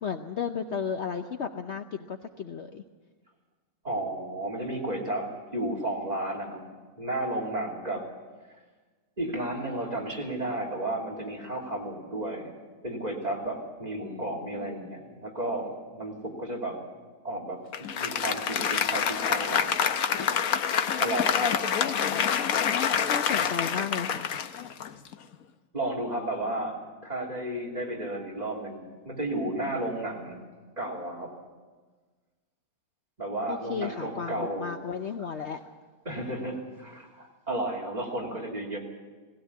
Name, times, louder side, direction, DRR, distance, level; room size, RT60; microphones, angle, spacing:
voice 1, 0.0-2.8 14.0-14.9 21.8-22.6 23.1-24.3 33.5-35.6, left 6 dB, 55° left, 6 dB, 0.9 m, -34 dB
voice 2, 3.8-6.6 7.0-8.1 9.2-12.5 12.8-16.8 17.2-19.8 21.0-21.6 25.7-30.4 30.8-31.3 33.2-34.8 36.0-38.8, right 1 dB, 25° right, -2 dB, 3.1 m, -33 dB
Applause, 17.7-25.3, left 8 dB, 70° left, 1.3 m, -27 dB
18.5 x 16.5 x 8.4 m, 1.4 s
omnidirectional pair, 1.6 m